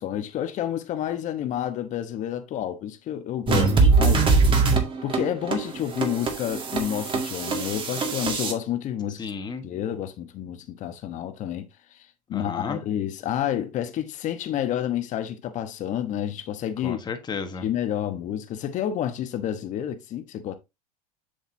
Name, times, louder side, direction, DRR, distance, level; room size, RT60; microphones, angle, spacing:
voice 1, 0.0-3.7 4.0-4.2 5.0-9.3 9.6-17.0 17.6-20.5, left 10 dB, 40° left, 1.1 m, -29 dB
voice 2, 3.5-3.9 9.2-9.6 12.3-12.8 16.8-17.6, left 5 dB, 25° left, 1.5 m, -33 dB
sound 1, 3.5-8.5, right 4 dB, 25° right, 2.1 m, -22 dB
7.5 x 6.5 x 2.7 m
supercardioid pair, 105°, 19 cm